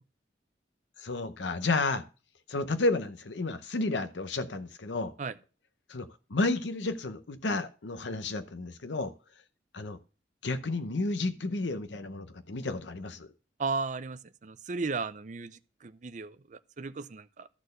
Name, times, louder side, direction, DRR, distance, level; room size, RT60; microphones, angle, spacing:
voice 1, 1.0-2.0 2.5-5.1 5.9-9.1 9.7-10.0 10.4-13.3, left 2 dB, 90° left, 0.8 m, -31 dB
voice 2, 13.6-17.5, right 4 dB, 45° right, 0.5 m, -35 dB
12.5 x 4.4 x 6.5 m
head